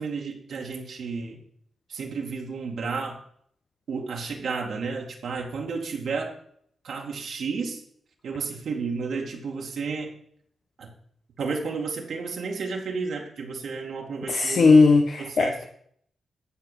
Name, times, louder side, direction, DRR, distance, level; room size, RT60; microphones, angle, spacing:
voice 1, 0.0-1.4 1.9-3.2 3.9-6.3 6.8-7.8 8.2-10.1 10.8-10.9 11.4-14.7 15.2-15.7, right 4 dB, 80° right, 0 dB, 2.3 m, -32 dB
voice 2, 14.3-15.7, left 4 dB, 70° left, 4 dB, 1.1 m, -18 dB
14.0 x 4.7 x 7.4 m, 0.65 s
cardioid pair, 70°, 0 cm